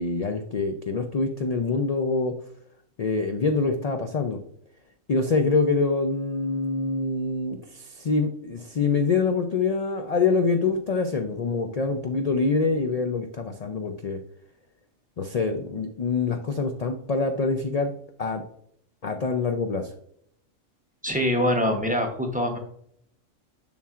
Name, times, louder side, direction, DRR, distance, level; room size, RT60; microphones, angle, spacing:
voice 1, 0.0-2.3 3.0-4.4 5.1-14.2 15.2-17.9 18.2-18.4 19.0-19.9, left 4 dB, 65° left, 5 dB, 0.3 m, -25 dB
voice 2, 21.0-22.6, equal, 10° right, 3 dB, 0.6 m, -24 dB
7.1 x 5.9 x 2.4 m, 0.68 s
omnidirectional pair, 1.4 m